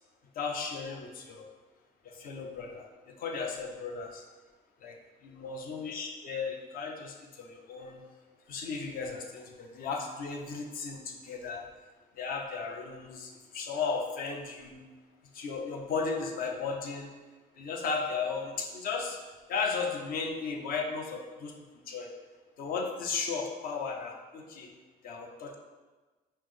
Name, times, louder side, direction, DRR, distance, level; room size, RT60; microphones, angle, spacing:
voice 1, 0.3-1.5 2.0-4.2 4.8-8.0 8.5-11.6 12.1-14.8 15.3-17.1 17.5-19.2 19.5-21.5 21.9-22.1 22.6-24.7 25.0-25.6, left 5 dB, 60° left, 2 dB, 0.6 m, -35 dB
5.5 x 2.0 x 3.2 m, 1.3 s
cardioid pair, 110°, 17 cm